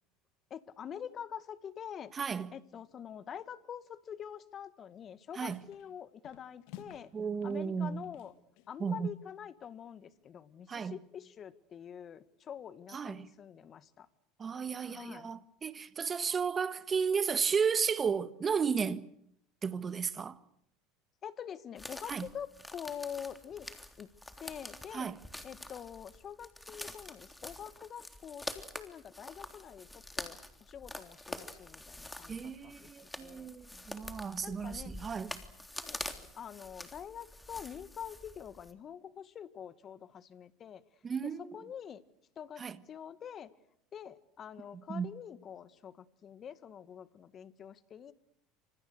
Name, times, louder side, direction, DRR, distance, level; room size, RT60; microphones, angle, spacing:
voice 1, 0.5-2.1 2.5-7.1 7.4-8.3 8.7-14.1 14.8-15.3 21.2-23.7 24.0-24.1 24.4-25.1 25.4-28.5 28.7-33.5 34.4-34.9 35.8-36.0 36.4-40.8 41.4-42.0 42.4-43.5 43.9-48.1, left 8 dB, 40° left, 1.8 m, -46 dB
voice 2, 2.1-2.5 5.3-5.6 7.1-8.1 8.8-9.1 10.7-11.0 12.9-13.3 14.4-19.0 19.6-20.4 22.1-22.2 24.9-25.2 32.3-35.3 41.0-41.5 42.6-42.8 44.9-45.1, right 6 dB, 30° right, 1.6 m, -33 dB
sound 1, 4.9-5.2 5.5-5.9 6.2-7.1 7.4-8.8, left 12 dB, 70° left, 2.4 m, -53 dB
sound 2, 21.8-38.7, left 1 dB, 10° left, 3.5 m, -46 dB
28.5 x 26.5 x 6.7 m
hypercardioid pair, 85°, 0 cm